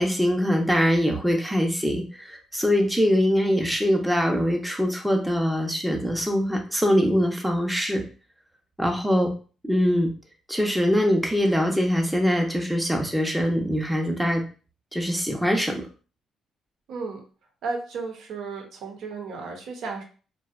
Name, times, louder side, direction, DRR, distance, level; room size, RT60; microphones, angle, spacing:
voice 1, 0.0-8.0 8.8-9.3 9.6-10.1 10.5-14.4 14.9-15.9, equal, 5° right, 1 dB, 0.5 m, -23 dB
voice 2, 16.9-17.2 17.6-20.0, right 4 dB, 80° right, 2 dB, 0.6 m, -33 dB
2.6 x 2.0 x 2.3 m, 0.37 s
cardioid pair, 90°, 0 cm